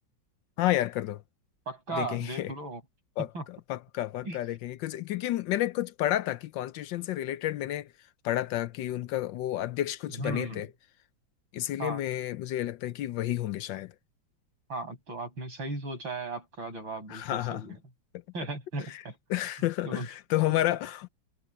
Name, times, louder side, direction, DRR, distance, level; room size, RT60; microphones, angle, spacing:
voice 1, 0.6-1.2 1.9-2.5 3.2-7.9 8.2-10.7 11.5-13.9 17.1-17.6 18.9-19.0 19.3-21.1, left 14 dB, 75° left, 1.3 m, -30 dB
voice 2, 1.7-2.8 3.3-3.4 4.2-4.4 10.2-10.7 11.8-12.0 14.7-17.8 18.3-19.2 19.6-20.1 20.5-20.6, right 2 dB, 75° right, 8.4 m, -36 dB
omnidirectional pair, 2.1 m